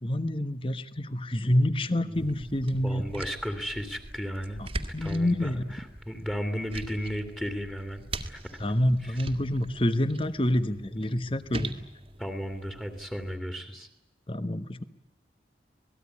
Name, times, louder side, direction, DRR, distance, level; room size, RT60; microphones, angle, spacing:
voice 1, 0.0-3.0 4.6-4.7 4.9-5.6 8.6-11.7 14.3-14.8, left 1 dB, 30° left, 13 dB, 1.2 m, -27 dB
voice 2, 2.1-4.6 5.0-8.4 9.0-9.2 10.9-11.2 12.2-13.9, equal, 5° left, 7 dB, 2.4 m, -35 dB
sound 1, 2.1-13.4, right 2 dB, 35° right, 1.9 m, -42 dB
27.0 x 19.5 x 9.8 m, 0.90 s
head